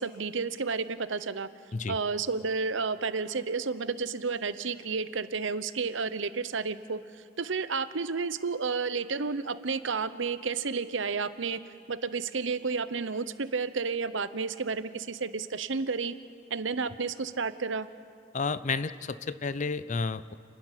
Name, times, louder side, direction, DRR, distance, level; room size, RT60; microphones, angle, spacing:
voice 1, 0.0-1.5 1.9-7.0 7.4-11.6 11.9-16.2 16.5-17.9, right 4 dB, 75° right, 13 dB, 0.9 m, -31 dB
voice 2, 18.3-20.3, left 4 dB, 40° left, 14 dB, 0.5 m, -31 dB
29.5 x 12.0 x 10.0 m, 2.3 s
head